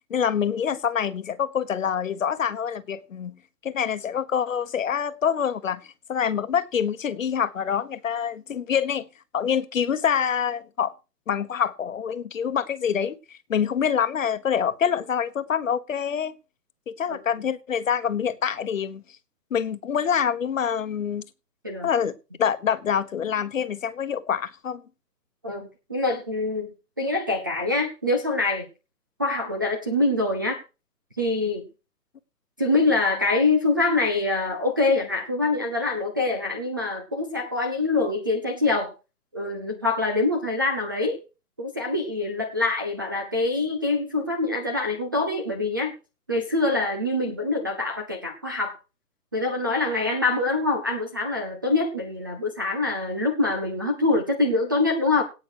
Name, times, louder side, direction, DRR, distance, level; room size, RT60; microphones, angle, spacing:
voice 1, 0.1-3.4 3.6-9.1 9.3-10.9 11.3-16.3 16.9-19.0 19.5-21.2 21.8-24.8, left 8 dB, 50° left, 1.3 m, -26 dB
voice 2, 25.4-26.7 27.0-28.7 29.2-30.6 31.2-31.6 32.6-38.9 39.3-41.2 41.6-45.9 46.3-48.8 49.3-55.2, left 2 dB, 15° right, 0.6 m, -25 dB
17.5 x 6.2 x 4.8 m
hypercardioid pair, 160°, 49 cm